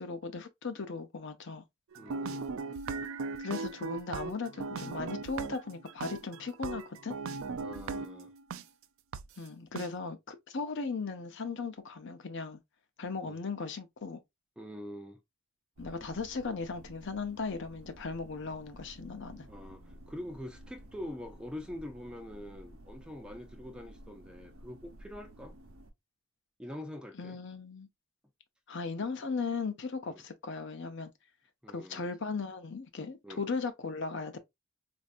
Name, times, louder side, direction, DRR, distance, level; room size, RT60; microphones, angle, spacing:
voice 1, 0.0-1.6 3.4-7.2 9.4-12.6 13.0-14.2 15.8-19.5 27.2-27.9 28.7-31.1 31.7-34.4, left 4 dB, 55° left, 0.6 m, -37 dB
sound 1, 1.9-8.6 9.1-9.2 9.8-9.9, right 4 dB, 65° right, 0.4 m, -38 dB
voice 2, 2.0-2.5 7.6-8.3 13.2-13.4 14.6-15.2 19.5-25.5 26.6-27.4 30.1-30.2 31.6-32.1 33.2-33.4, left 1 dB, 5° right, 0.5 m, -44 dB
sound 2, 15.8-25.9, right 1 dB, 80° right, 0.8 m, -53 dB
4.3 x 2.6 x 2.4 m
head